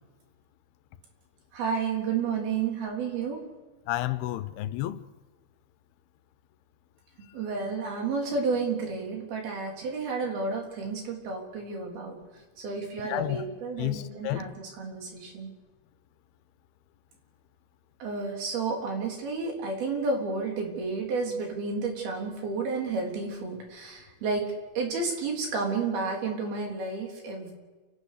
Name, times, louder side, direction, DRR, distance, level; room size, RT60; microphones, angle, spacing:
voice 1, 1.5-3.4 7.3-12.2 12.6-15.5 18.0-24.5 24.8-27.5, right 4 dB, 75° right, 5.6 m, -31 dB
voice 2, 3.9-5.0 13.1-13.4 13.8-14.5, left 16 dB, 90° left, 2.8 m, -31 dB
29.0 x 12.0 x 8.5 m
omnidirectional pair, 4.4 m